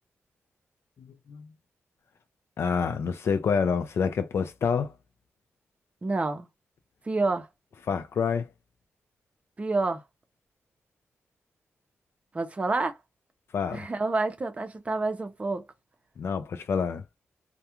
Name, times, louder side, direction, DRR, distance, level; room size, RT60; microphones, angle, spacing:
voice 1, 1.0-1.5 2.6-4.9 7.9-8.5 13.5-13.9 16.2-17.0, left 6 dB, 65° left, 0.4 m, -27 dB
voice 2, 6.0-6.5 7.1-7.5 9.6-10.0 12.3-13.0 13.7-15.6, right 3 dB, 25° right, 0.6 m, -28 dB
2.3 x 2.1 x 2.9 m
wide cardioid pair, 120°, 5 cm